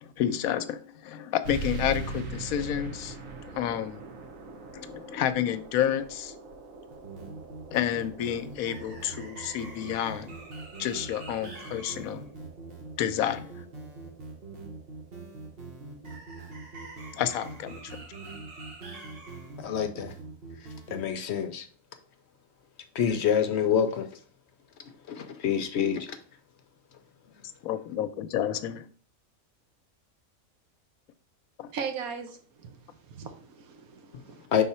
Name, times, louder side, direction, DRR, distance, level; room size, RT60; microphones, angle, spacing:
voice 1, 0.0-3.2 3.5-4.0 4.7-6.3 7.7-10.3 10.8-12.3 13.0-13.5 17.1-18.0 27.6-28.9 31.6-31.7, left 10 dB, 85° left, 1.0 m, -30 dB
sound 1, 1.4-16.5, right 3 dB, 70° right, 1.2 m, -43 dB
sound 2, 6.9-21.0, right 3 dB, 45° right, 1.4 m, -43 dB
voice 2, 19.6-20.1 20.9-21.6 22.9-24.1 25.1-26.2 34.5-34.6, left 8 dB, 60° left, 0.8 m, -26 dB
voice 3, 31.7-32.8 33.1-34.5, right 6 dB, 90° right, 1.3 m, -38 dB
5.6 x 4.0 x 4.2 m
omnidirectional pair, 1.5 m